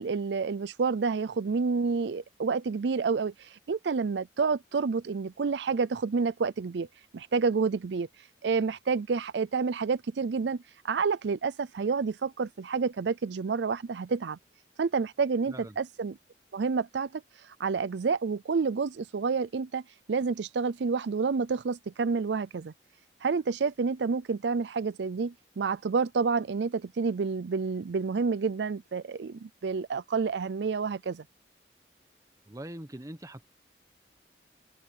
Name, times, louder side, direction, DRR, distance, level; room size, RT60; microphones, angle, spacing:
voice 1, 0.0-6.9 7.1-8.1 8.4-14.4 14.8-16.1 16.5-17.2 17.6-19.8 20.1-22.7 23.2-31.2, right 5 dB, 80° right, 0.5 m, -29 dB
voice 2, 32.5-33.5, right 1 dB, 20° right, 1.0 m, -42 dB
open air
head